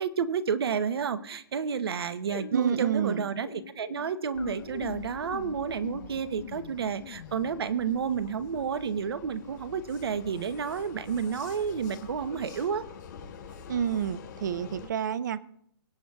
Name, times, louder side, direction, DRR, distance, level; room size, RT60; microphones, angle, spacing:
voice 1, 0.0-12.9, right 7 dB, 75° right, 13 dB, 0.9 m, -30 dB
sound 1, 2.3-7.8, left 7 dB, 80° left, 1.1 m, -43 dB
voice 2, 2.5-3.3 13.7-15.4, right 8 dB, 50° right, 18 dB, 0.5 m, -29 dB
Vehicle, 4.3-14.9, left 6 dB, 45° left, 4.9 m, -47 dB
24.0 x 8.0 x 2.4 m, 0.68 s
hypercardioid pair, 170°, 13 cm